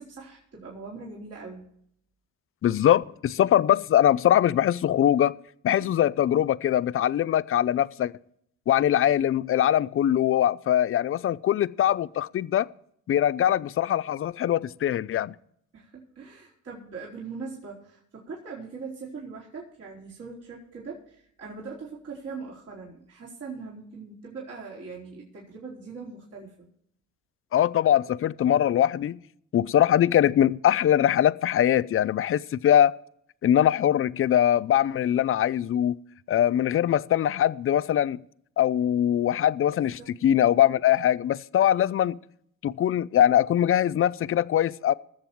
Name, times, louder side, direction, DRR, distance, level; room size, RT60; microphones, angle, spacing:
voice 1, 0.0-1.7 15.7-26.5 40.0-40.1, right 4 dB, 55° right, 4.5 m, -41 dB
voice 2, 2.6-5.3 5.6-8.1 8.7-12.7 13.1-15.3 27.5-29.2 29.5-32.9 33.4-36.0 36.3-38.2 38.6-42.2 42.6-44.9, left 11 dB, 45° left, 0.5 m, -22 dB
20.0 x 7.4 x 4.6 m
cardioid pair, 90°, 30 cm